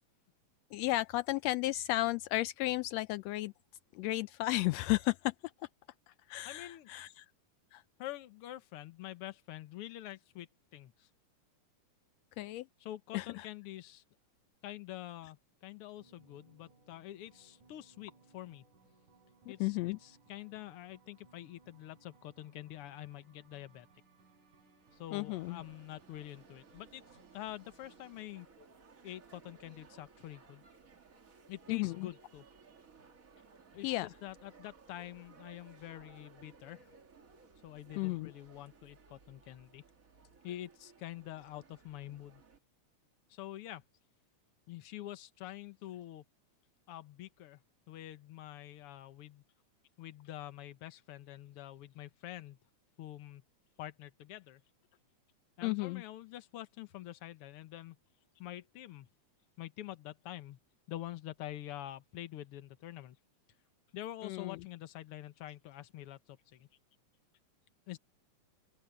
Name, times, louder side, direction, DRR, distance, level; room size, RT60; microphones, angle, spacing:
voice 1, 0.7-3.5 3.9-5.3 6.3-7.2 7.7-7.8 12.4-12.7 13.1-13.5 19.6-20.0 25.1-25.6 31.7-32.1 33.8-34.1 38.0-38.3 55.6-56.0 64.2-64.6, left 18 dB, 85° left, 1.5 m, -33 dB
voice 2, 6.4-6.9 8.0-11.1 12.8-14.0 14.6-18.6 19.5-23.9 24.9-28.5 29.0-30.6 31.5-32.5 33.7-36.9 37.6-39.8 40.4-42.4 43.3-43.8 44.7-46.2 46.9-49.4 50.0-52.6 53.0-53.4 53.8-54.6 55.6-58.0 58.4-59.1 59.6-60.6 60.9-63.2 63.9-66.7 67.9-68.0, left 14 dB, 65° left, 1.6 m, -46 dB
sound 1, 16.0-28.2, right 4 dB, 80° right, 6.1 m, -66 dB
sound 2, 24.8-42.6, right 4 dB, 35° right, 1.6 m, -60 dB
open air
omnidirectional pair, 3.5 m